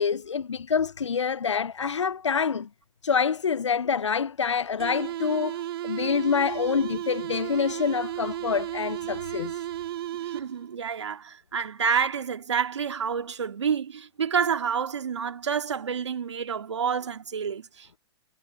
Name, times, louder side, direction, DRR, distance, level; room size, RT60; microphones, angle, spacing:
voice 1, 0.0-2.7 3.0-9.6, left 6 dB, 85° left, 0.5 m, -26 dB
sound 1, 4.8-10.7, right 13 dB, 55° right, 1.1 m, -34 dB
voice 2, 10.2-18.0, right 7 dB, 75° right, 2.0 m, -28 dB
hypercardioid pair, 115°, 15 cm